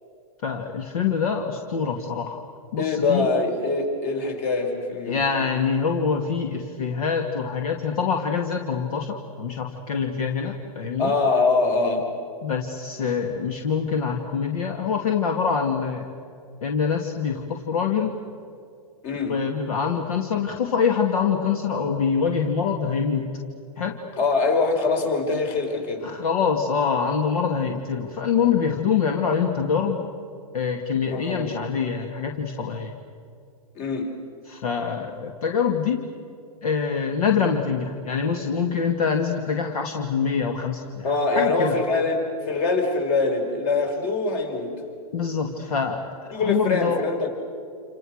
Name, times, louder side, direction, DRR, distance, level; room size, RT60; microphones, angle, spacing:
voice 1, 0.4-2.4 2.7-3.3 5.1-11.1 12.4-16.1 16.6-18.2 19.3-23.3 23.8-24.0 26.0-30.0 30.5-33.0 34.5-36.1 36.6-41.8 45.1-46.0 46.4-47.0, left 6 dB, 75° left, 3 dB, 2.5 m, -25 dB
voice 2, 2.8-5.2 11.0-12.1 19.0-19.4 24.2-26.1 31.1-31.7 33.7-34.1 41.0-44.7 46.3-47.3, left 3 dB, 45° left, 3 dB, 5.6 m, -23 dB
29.0 x 28.5 x 6.6 m, 2.4 s
hypercardioid pair, 125°, 19 cm